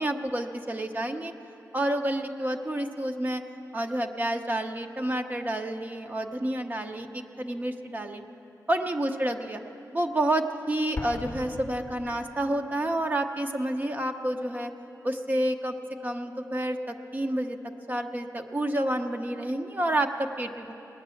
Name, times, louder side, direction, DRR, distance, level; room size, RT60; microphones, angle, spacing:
voice 1, 0.0-1.3 1.7-3.4 3.7-8.2 8.7-9.6 9.9-14.7 15.0-17.6 17.9-20.7, right 1 dB, 25° right, 5 dB, 0.7 m, -29 dB
Explosion, 10.9-12.7, left 3 dB, 35° left, 0.7 m, -39 dB
19.0 x 9.3 x 7.0 m, 2.9 s
wide cardioid pair, 125°, 7 cm